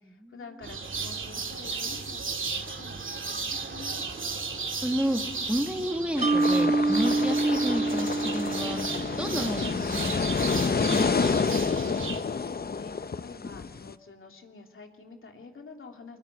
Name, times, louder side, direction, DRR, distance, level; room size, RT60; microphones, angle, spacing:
voice 1, 0.0-4.1 12.2-16.2, left 4 dB, 85° left, 3 dB, 2.8 m, -48 dB
sound 1, 0.6-12.2, right 4 dB, 75° right, 2.4 m, -35 dB
voice 2, 4.8-5.2 5.5-8.8 9.1-11.4, equal, 5° right, 5 dB, 2.3 m, -31 dB
sound 2, 6.2-13.9, left 5 dB, 50° left, 0.8 m, -29 dB
Mallet percussion, 6.2-9.5, right 2 dB, 35° right, 1.2 m, -26 dB
24.0 x 20.5 x 9.9 m, 1.1 s
wide cardioid pair, 70°, 20 cm